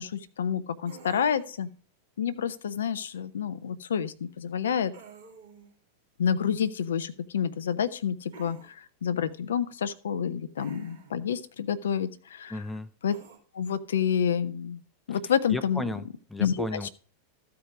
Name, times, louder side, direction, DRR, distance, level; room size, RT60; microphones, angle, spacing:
voice 1, 0.0-1.7 2.2-4.9 6.2-12.6 13.0-13.2 13.5-14.8 15.1-15.8 16.4-16.9, left 8 dB, 65° left, 14 dB, 0.5 m, -29 dB
sound 1, 0.9-1.6 4.9-5.7 8.3-8.7 10.6-11.2 13.1-13.4, right 5 dB, 65° right, 2.2 m, -49 dB
voice 2, 12.5-12.9 15.1-15.2 15.5-16.9, left 1 dB, 5° left, 10 dB, 0.6 m, -34 dB
13.5 x 4.7 x 5.0 m, 0.41 s
figure-of-eight pair, 90°, 0 cm